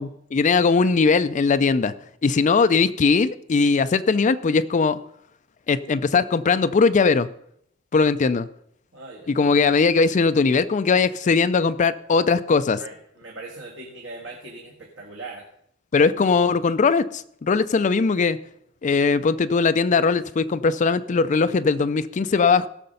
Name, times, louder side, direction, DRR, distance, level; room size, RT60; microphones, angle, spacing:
voice 1, 0.0-1.9 2.2-5.0 5.7-7.3 7.9-8.5 9.3-12.8 15.9-18.4 18.8-22.7, left 4 dB, 40° left, 13 dB, 0.4 m, -20 dB
voice 2, 8.9-9.3 12.8-15.5, right 2 dB, 65° right, -1 dB, 1.8 m, -39 dB
16.5 x 6.6 x 5.5 m, 0.71 s
head